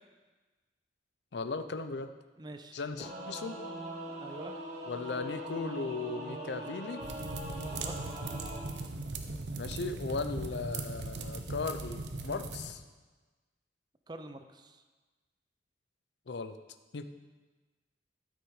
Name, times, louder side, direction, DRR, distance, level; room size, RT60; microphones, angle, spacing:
voice 1, 1.3-2.1 2.7-3.6 4.9-7.0 9.6-12.8 16.3-16.6 16.9-17.1, left 4 dB, 75° left, 10 dB, 0.6 m, -37 dB
voice 2, 2.4-2.8 4.2-4.6 7.6-8.0 14.1-14.8, right 2 dB, 25° right, 8 dB, 0.5 m, -46 dB
Singing / Musical instrument, 3.0-8.6, equal, 40° right, 2.4 m, -41 dB
sound 1, 7.0-12.7, right 3 dB, 80° right, 0.9 m, -39 dB
13.0 x 6.2 x 4.8 m, 1.3 s
head